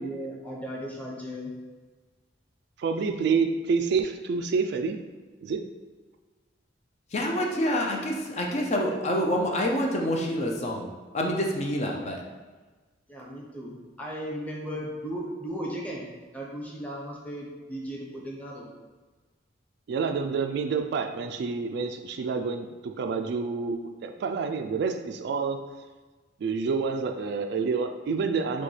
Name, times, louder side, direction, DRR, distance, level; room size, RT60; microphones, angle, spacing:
voice 1, 0.0-1.5 13.1-16.1 16.3-18.7, equal, 10° left, -3 dB, 0.9 m, -36 dB
voice 2, 2.8-5.0 5.4-5.6 19.9-25.6 26.4-28.6, right 5 dB, 60° right, 6 dB, 0.3 m, -28 dB
voice 3, 7.1-10.9 11.1-12.2, equal, 35° left, 1 dB, 0.5 m, -27 dB
6.3 x 2.3 x 3.2 m, 1.3 s
head